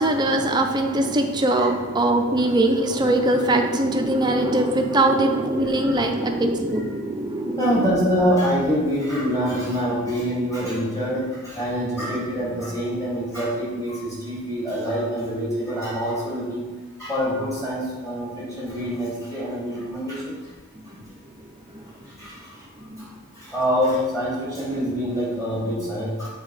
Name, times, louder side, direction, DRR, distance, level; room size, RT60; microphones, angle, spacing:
voice 1, 0.0-7.6 23.0-23.1, right 1 dB, 20° right, 3 dB, 0.5 m, -21 dB
voice 2, 7.6-16.6 17.0-20.4 22.2-22.6 23.0-23.1 23.4-26.3, equal, 15° left, -7 dB, 2.0 m, -25 dB
7.1 x 3.6 x 4.8 m, 1.3 s
head